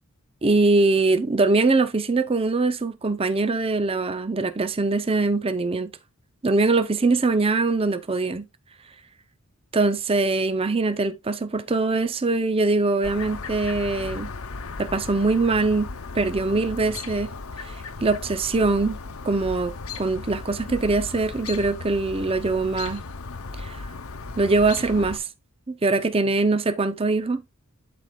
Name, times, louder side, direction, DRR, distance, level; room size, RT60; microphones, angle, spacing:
voice 1, 0.4-5.9 6.4-8.4 9.7-14.3 14.8-15.9 16.1-17.3 17.6-17.7 18.0-19.0 19.2-23.0 23.6-23.9 24.4-25.3 25.7-27.4, right 3 dB, 25° right, 0.6 m, -22 dB
Chirp tweet, 13.0-25.2, left 4 dB, 80° left, 0.9 m, -36 dB
12.5 x 4.3 x 2.3 m
head